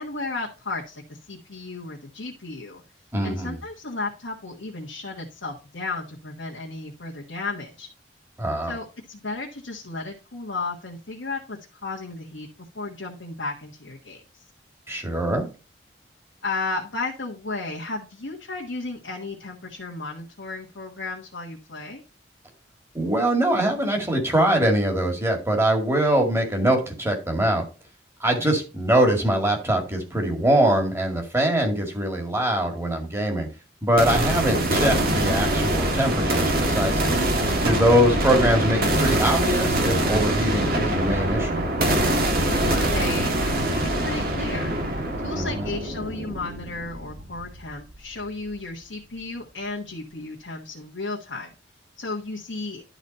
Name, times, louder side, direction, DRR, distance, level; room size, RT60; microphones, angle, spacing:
voice 1, 0.0-2.8 3.2-7.9 8.7-12.5 12.7-14.2 16.4-22.0 28.4-28.5 37.8-38.3 42.4-44.7 45.2-51.5 52.0-52.8, left 3 dB, 85° left, -2 dB, 1.4 m, -34 dB
voice 2, 3.1-3.6 8.4-8.7 14.9-15.5 22.9-27.6 28.2-33.5 33.8-37.2 37.6-41.6 45.3-45.7, right 1 dB, 15° right, 2 dB, 2.0 m, -23 dB
sound 1, 34.0-47.9, right 1 dB, 55° right, 1.7 m, -24 dB
11.5 x 4.1 x 4.2 m, 0.32 s
head